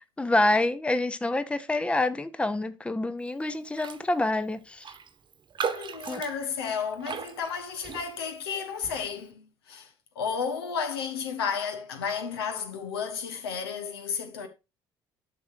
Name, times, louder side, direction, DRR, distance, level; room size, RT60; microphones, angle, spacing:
voice 1, 0.2-4.8 6.1-6.2, left 2 dB, 10° left, 0.8 m, -27 dB
Raindrop, 3.7-4.1 4.3-4.4 4.8-8.4 8.8-9.1, right 6 dB, 35° right, 1.2 m, -37 dB
voice 2, 5.7-9.9 10.1-14.5, left 6 dB, 75° left, 1.4 m, -32 dB
11.5 x 6.2 x 2.6 m
figure-of-eight pair, 55°, 13 cm